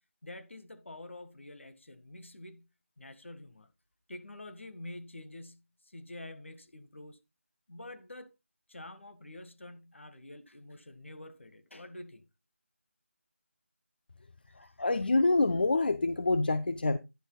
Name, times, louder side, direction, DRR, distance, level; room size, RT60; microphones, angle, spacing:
voice 1, 0.2-2.7 3.0-3.7 4.1-7.2 7.7-8.3 8.7-12.2 14.5-14.9, left 1 dB, 65° left, 1.6 m, -47 dB
voice 2, 14.8-17.0, left 2 dB, 45° left, 0.6 m, -26 dB
10.5 x 9.6 x 2.3 m
figure-of-eight pair, 165°, 7 cm